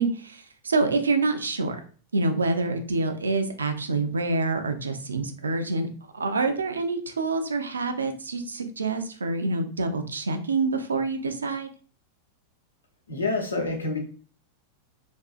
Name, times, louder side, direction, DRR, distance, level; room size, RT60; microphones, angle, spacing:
voice 1, 0.0-1.8 2.1-5.9 6.1-11.7, right 3 dB, 75° right, 7 dB, 0.3 m, -26 dB
voice 2, 13.1-14.0, left 3 dB, 80° left, 0 dB, 0.7 m, -27 dB
2.5 x 2.3 x 2.3 m, 0.42 s
figure-of-eight pair, 90°, 0 cm